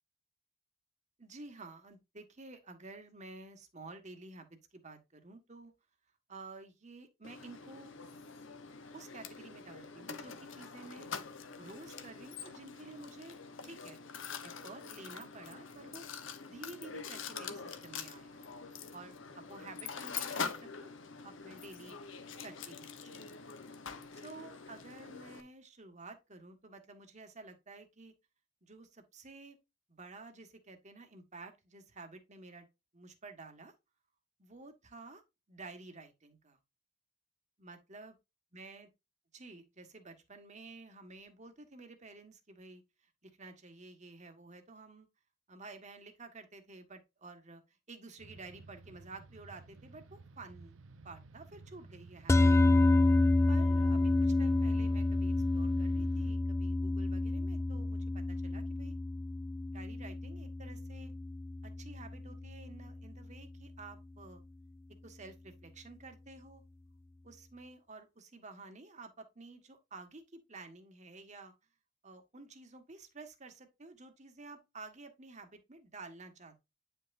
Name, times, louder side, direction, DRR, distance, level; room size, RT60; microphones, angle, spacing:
voice 1, 1.2-5.7 6.3-7.9 8.9-11.1 11.6-13.3 13.6-14.0 14.4-16.0 16.4-18.4 18.9-20.9 21.2-22.0 22.4-23.4 24.1-28.1 28.6-29.6 29.9-32.7 32.9-33.7 34.4-35.2 35.5-36.6 37.6-38.1 38.5-38.9 39.3-42.8 43.4-45.1 45.5-47.6 47.9-50.8 51.0-52.5 53.5-58.9 59.7-61.1 61.6-64.4 65.0-66.6 67.2-71.5 72.0-76.6, right 3 dB, 35° right, 1.6 m, -51 dB
Mechanisms, 7.2-25.4, left 6 dB, 75° left, 1.0 m, -45 dB
sound 1, 48.2-56.3, right 3 dB, 85° right, 0.7 m, -54 dB
sound 2, 52.3-62.7, left 2 dB, 15° left, 0.3 m, -29 dB
9.6 x 5.6 x 2.6 m
head